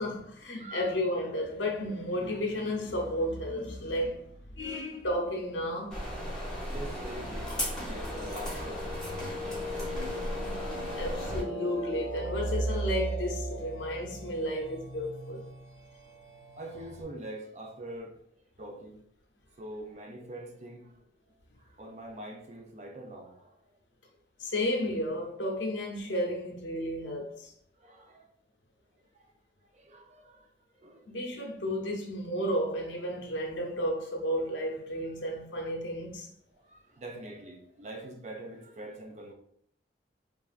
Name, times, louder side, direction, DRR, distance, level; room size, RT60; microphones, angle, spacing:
voice 1, 0.0-6.0 11.0-15.4 24.4-27.5 31.1-36.3, equal, 90° left, 0.7 m, -32 dB
voice 2, 0.5-0.9 2.3-2.4 6.3-10.5 11.8-11.9 16.6-19.0 19.6-20.9 21.6-23.5 27.8-28.3 29.7-30.5 30.8-31.1 36.6-39.3, right 1 dB, 40° right, 0.4 m, -45 dB
sound 1, 5.9-11.4, equal, 5° left, 0.8 m, -36 dB
sound 2, 8.0-17.0, right 1 dB, 90° right, 1.1 m, -37 dB
3.2 x 2.4 x 2.4 m
head